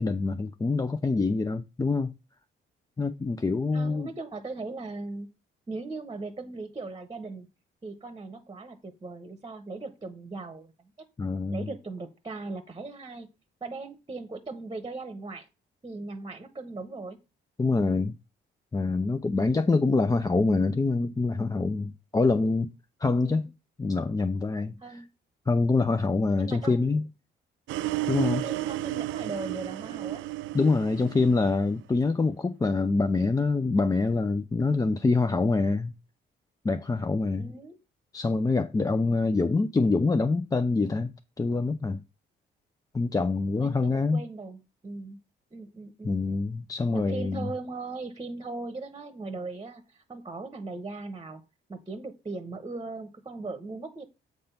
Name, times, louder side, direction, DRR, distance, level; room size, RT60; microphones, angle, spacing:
voice 1, 0.0-2.1 3.0-4.1 11.2-11.7 17.6-18.1 18.7-22.7 23.0-23.5 23.8-24.8 25.5-27.1 28.1-28.4 30.5-35.9 36.6-37.5 38.1-41.1 41.4-42.0 42.9-44.2 46.0-47.5, left 3 dB, 20° left, 0.5 m, -25 dB
voice 2, 3.7-5.3 5.7-7.5 7.8-11.1 11.5-13.3 13.6-15.5 15.8-17.2 19.4-19.7 23.2-23.5 24.8-25.1 26.4-27.0 28.2-30.3 37.4-37.8 43.6-45.2 45.5-46.2 46.9-51.4 51.7-54.0, right 3 dB, 20° right, 1.0 m, -39 dB
sound 1, 27.7-31.8, right 16 dB, 80° right, 0.4 m, -32 dB
7.8 x 3.6 x 5.7 m
cardioid pair, 90°, 20 cm